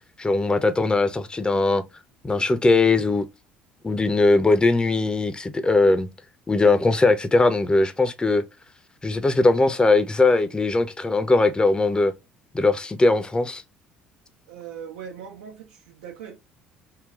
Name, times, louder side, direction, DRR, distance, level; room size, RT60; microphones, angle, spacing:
voice 1, 0.2-1.8 2.2-3.3 3.8-6.1 6.5-8.4 9.0-12.1 12.5-13.6, left 3 dB, 15° left, 0.7 m, -20 dB
voice 2, 14.5-16.4, right 8 dB, 80° right, 1.0 m, -40 dB
3.9 x 2.2 x 3.5 m
hypercardioid pair, 60°, 5 cm